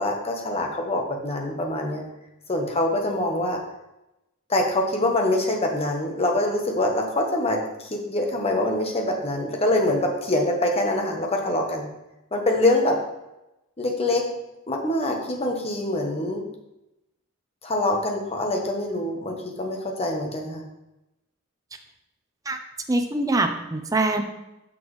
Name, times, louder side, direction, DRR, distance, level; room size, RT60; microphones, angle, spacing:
voice 1, 0.0-2.0 2.5-3.6 4.5-11.9 12.3-13.0 13.8-14.3 14.7-16.4 17.6-20.6, left 1 dB, 30° left, 1 dB, 1.0 m, -24 dB
voice 2, 22.9-24.2, right 2 dB, 15° right, 5 dB, 0.5 m, -23 dB
7.0 x 6.1 x 3.1 m, 0.94 s
head